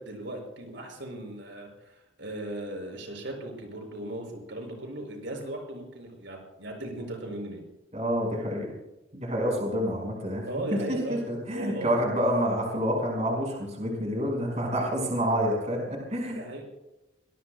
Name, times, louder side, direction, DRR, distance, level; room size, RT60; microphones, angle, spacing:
voice 1, 0.0-7.6 10.4-11.2 11.5-11.9 16.3-16.6, right 1 dB, 70° right, 1 dB, 6.0 m, -37 dB
voice 2, 7.9-8.7 9.1-10.4 10.7-16.4, equal, 35° right, 0 dB, 5.3 m, -28 dB
26.5 x 20.0 x 2.3 m, 0.96 s
head